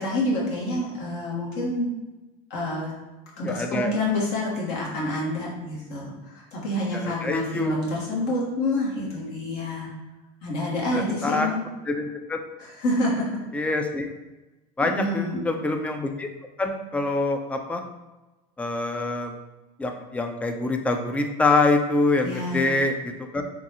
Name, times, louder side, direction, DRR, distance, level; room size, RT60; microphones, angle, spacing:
voice 1, 0.0-1.9 2.5-2.9 3.4-9.9 10.4-11.7 12.6-13.3 14.9-15.4 22.2-22.7, left 1 dB, 60° left, -5 dB, 1.4 m, -28 dB
voice 2, 3.4-3.9 6.9-7.8 10.9-11.5 11.9-12.4 13.5-14.1 14.8-16.3 16.6-17.8 18.6-19.3 19.8-23.4, left 2 dB, 5° left, 5 dB, 0.3 m, -25 dB
3.7 x 2.3 x 2.9 m, 1.1 s
supercardioid pair, 95°, 19 cm